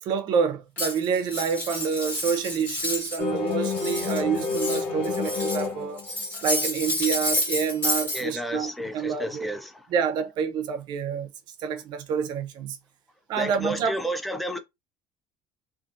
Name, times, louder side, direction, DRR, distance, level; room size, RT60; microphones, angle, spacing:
voice 1, 0.0-6.0 6.4-9.5 9.9-11.3 11.6-12.8 13.3-14.0, right 6 dB, 55° right, 0.5 m, -28 dB
Cutlery silverware, 0.8-3.2 3.5-5.7 6.0-8.2, left 1 dB, 20° left, 1.1 m, -30 dB
sound 1, 3.2-6.2, left 4 dB, 80° left, 0.8 m, -29 dB
voice 2, 8.1-9.7 13.4-14.6, equal, ahead, 0.3 m, -31 dB
2.6 x 2.5 x 2.4 m
cardioid pair, 160°, 9 cm